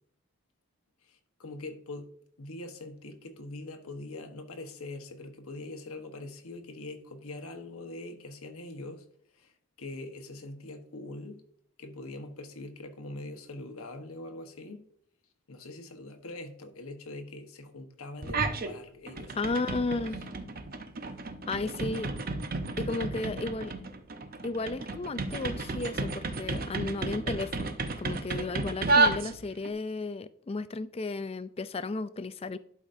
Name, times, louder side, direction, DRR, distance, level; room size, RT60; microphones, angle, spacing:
voice 1, 1.0-2.1 2.4-9.1 9.3-9.5 9.8-11.4 11.8-14.8 15.5-19.6 21.6-21.7, left 2 dB, 75° left, 1.2 m, -43 dB
sound 1, 18.2-18.7 19.1-29.7, right 3 dB, 40° right, 0.7 m, -32 dB
voice 2, 19.4-20.2 21.5-22.1 22.8-23.8 24.4-32.6, left 3 dB, 25° left, 0.4 m, -34 dB
12.0 x 5.0 x 2.6 m
head